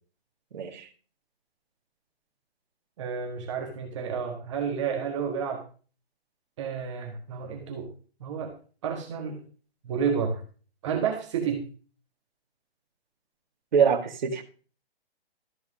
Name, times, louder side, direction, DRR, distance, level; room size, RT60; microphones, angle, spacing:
voice 1, 0.5-0.9 13.7-14.4, right 7 dB, 45° right, 4 dB, 1.8 m, -24 dB
voice 2, 3.0-5.6 6.6-7.9 8.2-8.5 8.8-9.4 9.8-10.4 10.8-11.6, right 6 dB, 30° right, 2 dB, 1.5 m, -30 dB
13.5 x 4.7 x 6.1 m, 0.38 s
hypercardioid pair, 170°, 32 cm